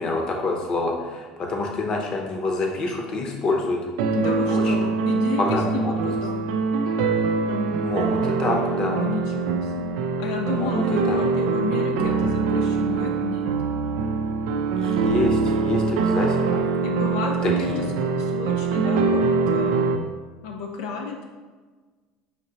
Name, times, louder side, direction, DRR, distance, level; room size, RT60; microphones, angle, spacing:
voice 1, 0.0-3.8 4.5-4.7 5.4-5.9 7.8-9.0 10.5-11.2 14.8-16.6 17.4-17.9, left 2 dB, 40° left, 1 dB, 0.8 m, -27 dB
sound 1, 4.0-20.0, right 4 dB, 85° right, 0.4 m, -23 dB
voice 2, 4.1-6.4 8.8-13.5 16.8-17.7 18.0-19.8 20.4-21.3, left 4 dB, 85° left, 1 dB, 0.5 m, -31 dB
5.7 x 2.9 x 2.9 m, 1.4 s
cardioid pair, 130°, 2 cm